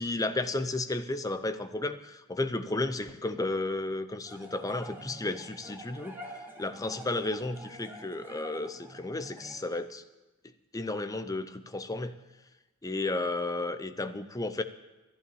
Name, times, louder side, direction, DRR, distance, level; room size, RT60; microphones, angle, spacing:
voice 1, 0.0-6.2 6.6-10.0 10.7-12.2 12.8-14.6, left 2 dB, 15° left, 10 dB, 0.6 m, -33 dB
sound 1, 4.2-9.6, equal, 10° right, 1.7 m, -47 dB
11.5 x 11.5 x 7.0 m, 1.1 s
head